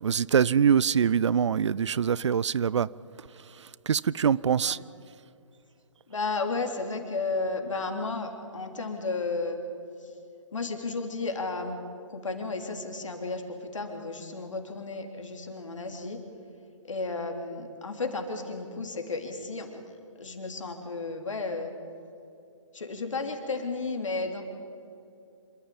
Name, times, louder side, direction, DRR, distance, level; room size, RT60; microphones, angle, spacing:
voice 1, 0.0-2.9 3.9-4.8, right 7 dB, 60° right, 0.5 m, -24 dB
voice 2, 6.1-9.6 10.0-10.1 10.5-11.8 12.1-16.2 16.8-19.8 20.2-21.7 22.7-24.4, left 3 dB, 70° left, 3.4 m, -33 dB
26.5 x 14.0 x 8.8 m
figure-of-eight pair, 140°, 17 cm